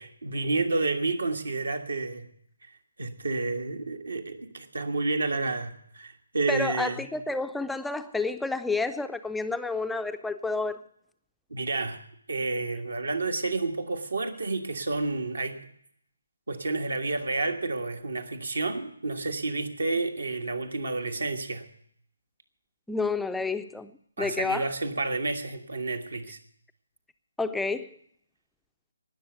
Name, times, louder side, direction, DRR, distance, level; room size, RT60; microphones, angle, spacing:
voice 1, 0.0-2.3 3.0-7.1 11.5-12.0 12.3-15.6 16.5-21.6 24.2-26.4, right 3 dB, 70° right, 5 dB, 1.6 m, -30 dB
voice 2, 6.5-10.8 22.9-23.9 24.2-24.6 27.4-28.0, left 3 dB, 5° left, 9 dB, 0.5 m, -30 dB
18.5 x 6.9 x 7.8 m, 0.68 s
figure-of-eight pair, 145°, 0 cm